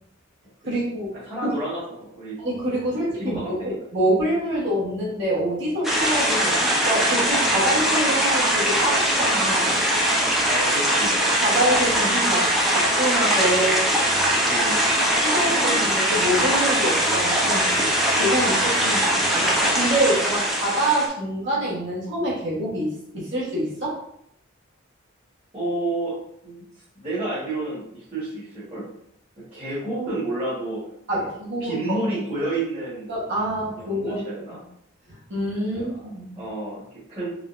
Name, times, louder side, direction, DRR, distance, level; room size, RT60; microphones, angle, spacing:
voice 1, 0.7-1.1 1.4-1.5 2.4-9.8 11.4-13.9 15.2-17.7 18.1-24.0 31.1-32.0 33.1-34.2 35.1-36.4, right 1 dB, 55° right, -7 dB, 1.3 m, -26 dB
voice 2, 1.2-2.4 2.9-3.7 10.5-11.2 14.4-14.8 25.5-26.1 26.4-26.6 26.9-28.9 29.4-30.8 31.1-31.3 31.6-33.1 33.7-34.6 35.7-37.3, right 2 dB, 25° right, -12 dB, 1.4 m, -30 dB
sound 1, 5.8-21.1, right 1 dB, ahead, 0.5 m, -21 dB
3.8 x 3.3 x 2.6 m, 0.74 s
head